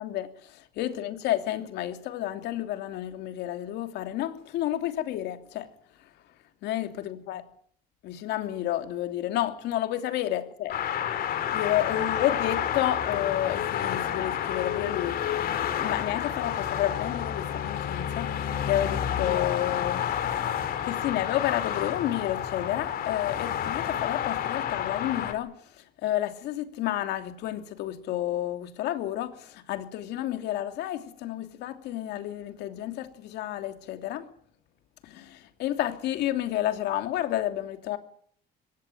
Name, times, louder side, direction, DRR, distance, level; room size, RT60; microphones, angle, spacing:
voice 1, 0.0-5.7 6.0-6.1 6.6-7.4 8.0-10.7 11.5-15.4 15.7-20.1 20.8-34.3 35.0-38.0, left 13 dB, 85° left, 2.9 m, -30 dB
sound 1, 10.7-25.3, left 9 dB, 65° left, 3.6 m, -30 dB
23.5 x 18.0 x 9.0 m
cardioid pair, 110°, 17 cm